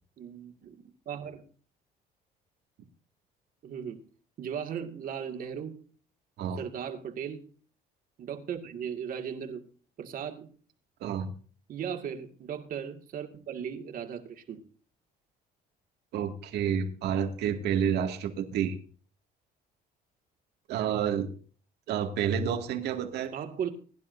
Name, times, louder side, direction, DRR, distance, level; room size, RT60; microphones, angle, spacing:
voice 1, 0.2-1.4 3.6-4.0 4.4-5.8 6.6-7.4 8.2-9.6 10.0-10.5 11.7-14.6 23.3-23.7, right 8 dB, 55° right, 2.2 m, -37 dB
voice 2, 11.0-11.3 16.1-18.8 20.7-21.3 21.9-23.3, right 8 dB, 80° right, 2.1 m, -29 dB
21.0 x 10.5 x 2.7 m
cardioid pair, 110°, 17 cm